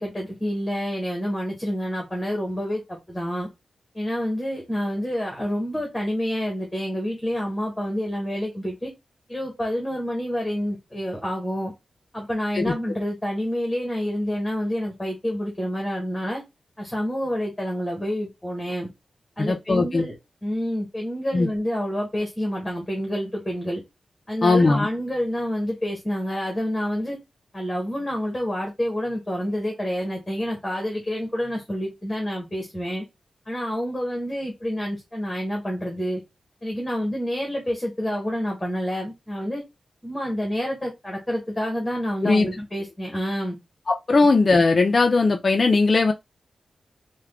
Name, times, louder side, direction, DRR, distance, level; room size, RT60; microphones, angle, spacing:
voice 1, 0.0-3.5 3.9-8.9 9.3-11.7 12.1-16.4 16.8-18.9 19.4-20.1 20.4-23.8 24.3-27.2 27.5-33.0 33.5-36.2 36.6-39.6 40.0-43.5, equal, 10° left, 1.1 m, -28 dB
voice 2, 19.4-20.0 21.3-21.5 24.4-24.9 42.2-42.5 43.9-46.1, left 3 dB, 35° left, 0.4 m, -19 dB
3.5 x 2.2 x 3.4 m
wide cardioid pair, 175°, 0 cm